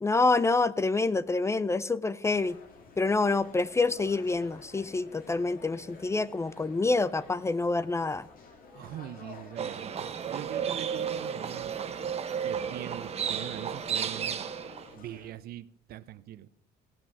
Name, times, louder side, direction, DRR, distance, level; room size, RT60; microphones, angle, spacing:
voice 1, 0.0-2.6 3.0-8.2, left 3 dB, 15° left, 0.4 m, -27 dB
sound 1, 2.3-15.3, left 4 dB, 55° left, 2.1 m, -51 dB
voice 2, 8.7-11.7 12.4-14.4 14.9-16.5, right 13 dB, 65° right, 0.6 m, -42 dB
Livestock farm animals working animals, 9.6-14.9, right 7 dB, 40° right, 0.9 m, -33 dB
17.0 x 6.0 x 5.4 m
cardioid pair, 110°, 17 cm